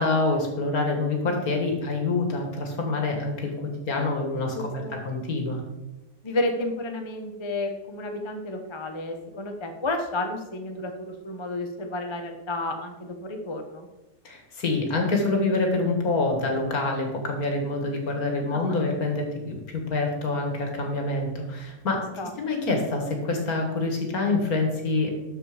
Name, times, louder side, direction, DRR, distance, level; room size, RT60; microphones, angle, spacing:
voice 1, 0.0-3.5 3.9-5.6 14.2-22.0 22.4-25.2, left 3 dB, 60° left, 3 dB, 2.2 m, -26 dB
voice 2, 4.5-5.0 6.2-13.9 18.5-18.8 22.2-22.3, left 2 dB, 25° left, 4 dB, 0.7 m, -31 dB
13.0 x 4.8 x 5.0 m, 1.0 s
omnidirectional pair, 1.8 m